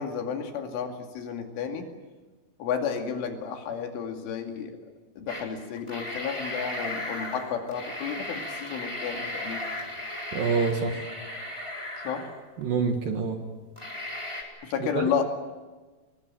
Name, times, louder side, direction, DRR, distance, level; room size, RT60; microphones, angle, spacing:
voice 1, 0.0-1.9 2.6-4.8 5.2-9.6 12.0-12.3 14.6-15.2, left 7 dB, 75° left, 4 dB, 4.8 m, -32 dB
sound 1, 5.3-5.4 5.8-12.6 13.1-13.2 13.7-14.4, left 1 dB, 5° left, 3.8 m, -36 dB
voice 2, 10.3-11.0 12.6-13.4 14.9-15.0, right 5 dB, 60° right, 4 dB, 2.7 m, -26 dB
25.5 x 21.5 x 9.1 m, 1.3 s
omnidirectional pair, 5.8 m